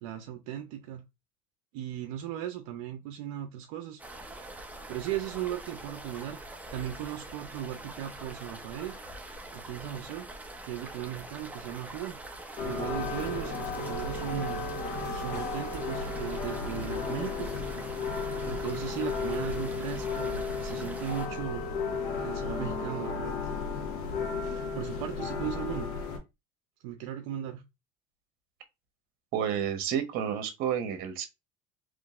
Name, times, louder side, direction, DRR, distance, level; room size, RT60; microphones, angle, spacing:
voice 1, 0.0-1.0 1.7-4.0 4.9-9.0 9.5-10.3 10.7-12.2 12.6-14.7 15.1-17.8 18.4-21.7 22.2-23.3 24.6-25.9 26.8-27.6, right 11 dB, 80° right, 0.6 m, -37 dB
sound 1, 4.0-21.3, right 1 dB, 10° right, 0.8 m, -44 dB
sound 2, 12.6-26.2, left 4 dB, 60° left, 1.4 m, -34 dB
voice 2, 29.3-31.3, right 8 dB, 60° right, 1.0 m, -30 dB
3.8 x 3.1 x 2.5 m
supercardioid pair, 105°, 17 cm